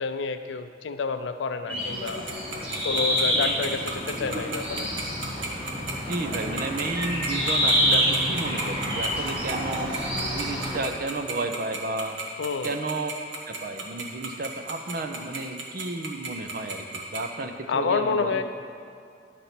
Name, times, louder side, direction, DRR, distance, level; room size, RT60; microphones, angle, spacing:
voice 1, 0.0-2.3 2.8-4.9 12.4-12.8 17.7-18.4, left 4 dB, 80° left, 9 dB, 0.4 m, -28 dB
sound 1, 1.7-10.8, equal, 30° right, 1.4 m, -27 dB
voice 2, 1.7-2.0 2.8-2.9 3.3-3.8 5.7-9.9 10.3-12.2 12.6-13.1 13.5-18.4, right 3 dB, 50° right, 6 dB, 0.6 m, -33 dB
Tick-tock, 2.1-17.2, right 4 dB, 70° right, 1.2 m, -33 dB
11.0 x 4.1 x 5.8 m, 2.5 s
head